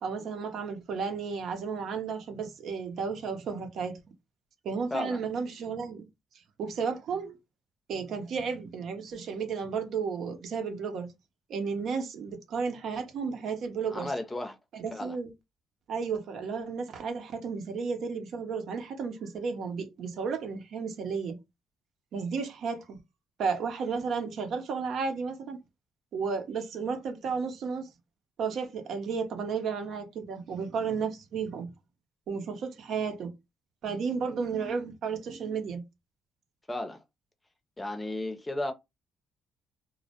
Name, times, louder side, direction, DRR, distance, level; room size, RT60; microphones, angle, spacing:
voice 1, 0.0-4.0 4.6-6.0 6.6-7.4 7.9-11.1 11.5-14.1 14.7-15.3 15.9-21.4 22.1-23.0 23.4-25.6 26.1-27.9 28.4-31.7 32.3-33.3 33.8-35.8, right 5 dB, 65° right, 0.6 m, -33 dB
voice 2, 4.9-5.2 13.9-14.6 14.9-15.2 36.7-37.0 37.8-38.7, left 1 dB, 20° left, 0.6 m, -34 dB
2.1 x 2.1 x 2.8 m
supercardioid pair, 55°, 0 cm